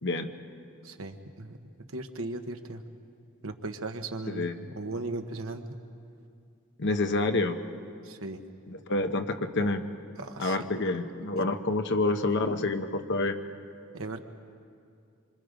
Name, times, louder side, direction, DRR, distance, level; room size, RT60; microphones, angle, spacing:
voice 1, 0.8-1.6 1.9-2.8 3.4-5.6 8.0-8.4 10.2-10.6 13.9-14.2, right 2 dB, 70° right, 6 dB, 1.2 m, -37 dB
voice 2, 6.8-7.6 8.7-9.8 10.4-13.3, left 2 dB, 55° left, 6 dB, 1.1 m, -28 dB
26.0 x 25.5 x 5.2 m, 2.4 s
head